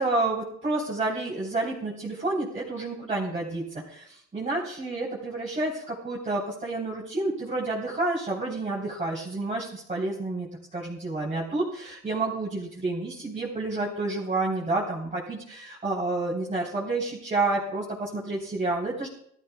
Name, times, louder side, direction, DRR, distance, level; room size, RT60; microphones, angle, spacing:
voice 1, 0.0-19.1, right 2 dB, 25° right, -7 dB, 3.9 m, -29 dB
17.5 x 14.0 x 2.4 m, 0.68 s
cardioid pair, 90°, 30 cm